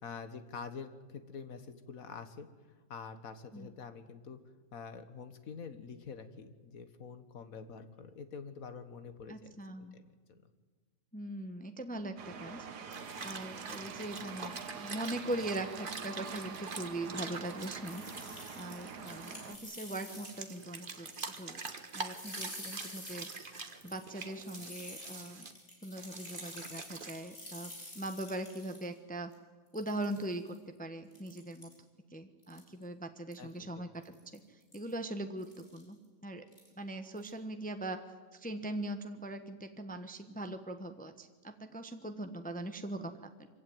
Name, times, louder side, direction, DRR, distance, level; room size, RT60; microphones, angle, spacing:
voice 1, 0.0-2.5 2.9-4.4 4.7-9.5 9.8-10.4 33.4-33.8, left 5 dB, 55° left, 10 dB, 1.8 m, -46 dB
voice 2, 9.3-9.9 11.1-12.7 13.2-21.6 21.9-23.3 23.8-25.5 25.8-29.3 29.7-31.7 32.1-34.1 34.5-36.4 36.8-38.0 38.3-43.5, right 1 dB, 5° left, 7 dB, 1.0 m, -41 dB
sound 1, 12.2-19.6, right 6 dB, 70° right, 1.8 m, -45 dB
sound 2, 12.9-19.4 19.9-25.5 26.0-27.1, right 4 dB, 30° right, 1.4 m, -45 dB
sound 3, 17.8-20.6 20.9-21.7 22.0-28.9 29.3-29.4 29.7-30.6 31.1-31.7 32.4-32.8 33.3-33.5 34.0-34.4 34.7-34.9 35.4-35.8 36.5-36.7 37.0-37.3, left 1 dB, 35° left, 5.4 m, -49 dB
24.0 x 16.0 x 9.3 m, 1.4 s
omnidirectional pair, 1.9 m